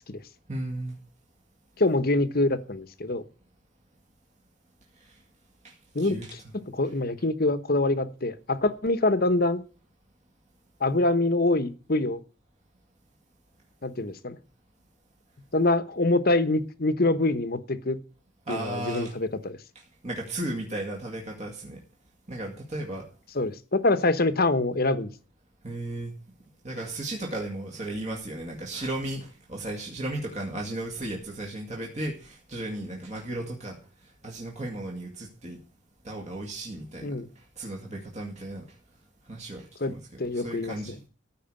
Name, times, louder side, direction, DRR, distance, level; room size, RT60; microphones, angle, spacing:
voice 1, 0.5-0.9 6.0-6.3 18.5-19.1 20.0-21.8 22.3-23.1 25.6-26.1 26.6-33.8 34.2-35.6 36.1-37.1 37.6-38.6 39.3-40.0 40.4-41.0, right 1 dB, 35° right, 0 dB, 2.1 m, -35 dB
voice 2, 1.8-3.2 5.9-9.6 10.8-12.2 13.8-14.4 15.5-18.0 18.5-19.6 23.3-25.1 37.0-37.3 39.8-41.0, left 2 dB, 50° left, 12 dB, 1.1 m, -25 dB
14.5 x 4.9 x 8.9 m, 0.38 s
head